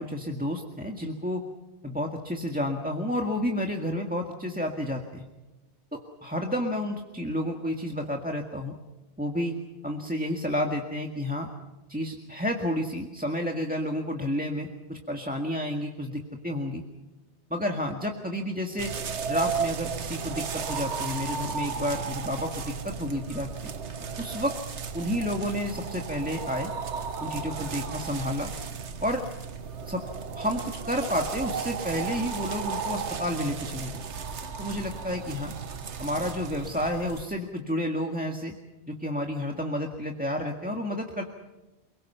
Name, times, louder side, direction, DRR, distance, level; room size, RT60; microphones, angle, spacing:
voice 1, 0.0-1.4 1.8-5.3 5.9-8.7 9.2-9.6 9.8-11.5 11.9-16.8 17.5-18.9 19.3-23.5 24.2-24.5 24.9-26.7 27.2-28.5 29.0-29.2 29.8-30.0 30.3-34.0 34.6-35.5 36.0-38.5 38.9-41.2, equal, 10° right, 2 dB, 1.8 m, -30 dB
sound 1, 18.8-37.3, right 6 dB, 90° right, 1.4 m, -34 dB
29.5 x 22.5 x 5.7 m, 1.1 s
omnidirectional pair, 1.1 m